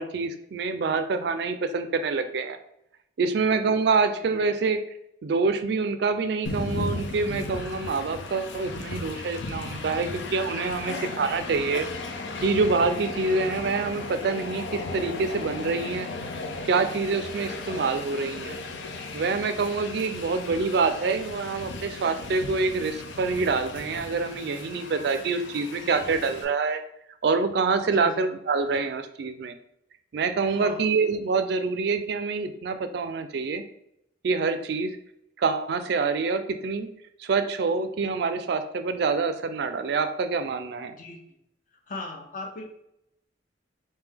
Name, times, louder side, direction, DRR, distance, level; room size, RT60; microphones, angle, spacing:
voice 1, 0.0-2.6 3.2-4.8 5.2-11.9 12.4-16.1 16.7-18.6 19.1-26.8 27.2-29.5 30.1-33.6 34.2-34.9 35.4-36.9 37.2-41.0, right 4 dB, 60° right, 9 dB, 0.4 m, -26 dB
Train, 6.4-26.4, left 3 dB, 85° left, 0.5 m, -36 dB
voice 2, 30.5-30.8 41.0-41.2 41.9-42.6, left 2 dB, 45° left, 2 dB, 0.7 m, -38 dB
3.4 x 2.7 x 3.5 m, 0.78 s
head